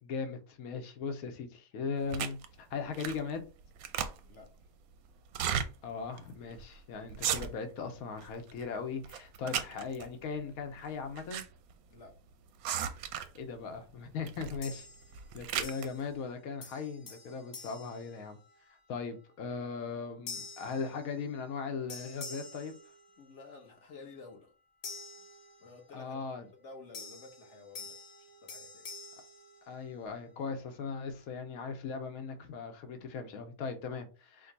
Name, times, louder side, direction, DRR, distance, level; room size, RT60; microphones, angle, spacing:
voice 1, 0.0-2.4 2.7-3.4 5.8-11.4 13.3-14.9 15.3-18.4 18.9-22.7 25.9-26.5 29.7-34.5, left 5 dB, 90° left, 1.2 m, -38 dB
sound 1, 2.1-2.5 2.9-3.3 3.6-4.4 5.3-5.7 6.2-6.3 6.5-6.7 7.1-7.8 8.2-8.7 9.0-10.1 10.9-11.5 11.7-11.8 12.6-13.4 14.3-14.6 15.0-15.9, right 9 dB, 90° right, 1.1 m, -35 dB
voice 2, 3.9-4.5 11.9-12.1 23.2-24.5 25.2-25.3 25.6-26.3 26.5-28.1 28.4-28.9, left 3 dB, 55° left, 1.4 m, -52 dB
sound 2, 14.6-15.3 15.6-16.3 16.6-18.8 19.3-19.6 20.3-21.6 21.9-23.5 24.8-26.0 26.9-30.2, left 4 dB, 75° left, 1.5 m, -48 dB
5.1 x 2.2 x 3.9 m
omnidirectional pair, 1.5 m